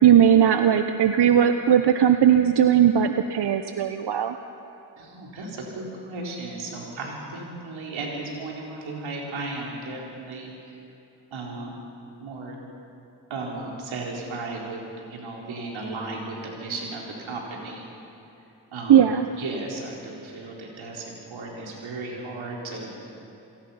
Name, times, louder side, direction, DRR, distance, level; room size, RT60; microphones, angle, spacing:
voice 1, 0.0-4.4 18.9-19.3, right 9 dB, 60° right, 8 dB, 1.0 m, -18 dB
voice 2, 5.0-10.8 11.3-11.8 12.2-12.6 13.3-17.8 18.7-19.0 19.4-23.0, right 2 dB, 85° right, -2 dB, 4.2 m, -35 dB
27.0 x 18.0 x 5.7 m, 2.9 s
supercardioid pair, 45°, 46 cm